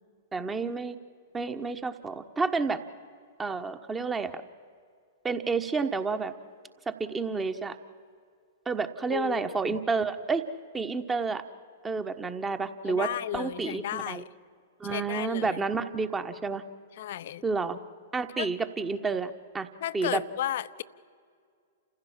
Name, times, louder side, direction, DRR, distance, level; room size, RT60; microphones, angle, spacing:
voice 1, 0.3-1.0 1.3-2.8 3.4-4.4 5.2-6.3 6.9-7.8 8.6-10.4 10.7-11.4 11.8-14.2 14.8-16.6 17.4-17.8 18.1-19.7 19.9-20.2, right 4 dB, 15° right, 9 dB, 1.3 m, -30 dB
voice 2, 9.1-9.8 12.9-14.3 14.9-15.6 17.0-17.4 18.4-18.5 19.8-20.8, left 12 dB, 60° left, 16 dB, 0.7 m, -34 dB
29.0 x 15.5 x 7.5 m, 2.2 s
figure-of-eight pair, 110°, 0 cm